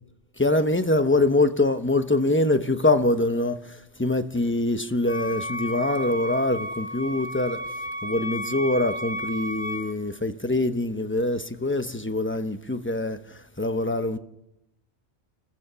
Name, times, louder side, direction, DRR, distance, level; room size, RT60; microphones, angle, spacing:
voice 1, 0.4-7.6 8.0-14.2, left 2 dB, 10° left, 1.0 m, -24 dB
Wind instrument woodwind instrument, 5.0-10.0, equal, 25° right, 2.7 m, -33 dB
28.0 x 15.0 x 6.9 m
omnidirectional pair, 1.2 m